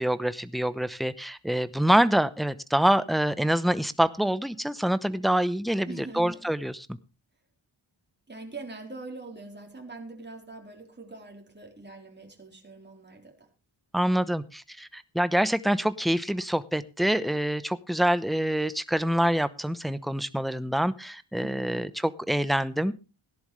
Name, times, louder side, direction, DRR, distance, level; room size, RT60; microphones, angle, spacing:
voice 1, 0.0-7.0 13.9-22.9, right 1 dB, ahead, 0.8 m, -26 dB
voice 2, 5.9-6.4 8.3-13.5 21.4-21.9, right 3 dB, 20° right, 3.8 m, -43 dB
17.5 x 11.0 x 3.2 m
wide cardioid pair, 90°, 49 cm